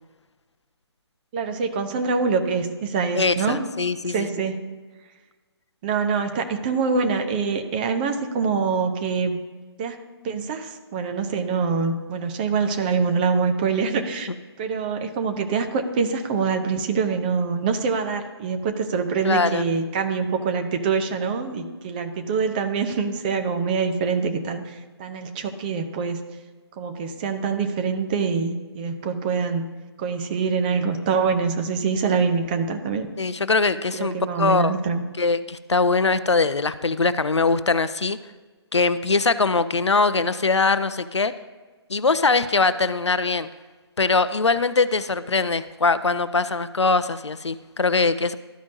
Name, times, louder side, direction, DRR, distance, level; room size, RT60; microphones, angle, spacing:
voice 1, 1.3-3.7 4.1-4.7 5.8-9.4 9.8-10.0 10.2-14.3 14.6-26.2 26.8-29.6 30.0-33.1 33.9-35.0, right 5 dB, 20° right, 6 dB, 0.5 m, -25 dB
voice 2, 3.1-4.3 19.2-19.6 33.2-34.7 35.2-38.2 38.7-41.3 41.9-43.5 44.0-48.4, left 4 dB, 85° left, 14 dB, 0.5 m, -22 dB
13.0 x 5.1 x 2.7 m, 1.3 s
figure-of-eight pair, 140°, 14 cm